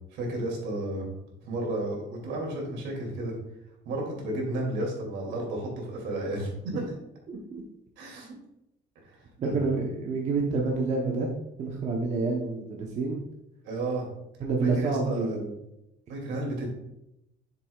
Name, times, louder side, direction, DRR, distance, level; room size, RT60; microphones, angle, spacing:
voice 1, 0.1-1.1 1.5-3.4 3.8-6.8 8.0-8.3 9.0-9.2 9.4-9.8 13.6-14.1 14.6-15.5 16.1-16.7, right 1 dB, 80° right, -1 dB, 2.6 m, -32 dB
voice 2, 7.3-7.6 9.4-11.3 11.6-13.2 14.4-15.4, right 3 dB, 40° right, -1 dB, 1.0 m, -28 dB
8.2 x 6.8 x 2.4 m, 0.86 s
cardioid pair, 155°, 19 cm